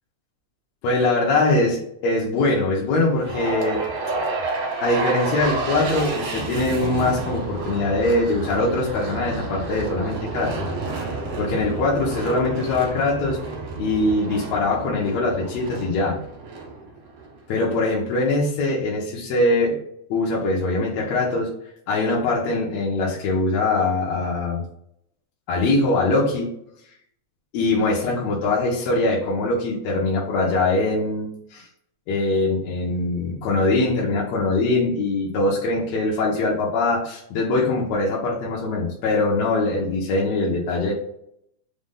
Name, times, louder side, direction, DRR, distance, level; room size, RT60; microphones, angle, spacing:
voice 1, 0.8-3.8 4.8-10.6 11.0-13.4 13.8-16.2 17.5-19.8 20.1-21.5 21.9-24.6 25.5-26.5 27.5-31.7 32.1-40.9, left 2 dB, 70° left, -4 dB, 1.9 m, -22 dB
sound 1, 3.2-17.4, right 3 dB, 65° right, 2.0 m, -30 dB
5.2 x 2.3 x 3.6 m, 0.72 s
omnidirectional pair, 3.4 m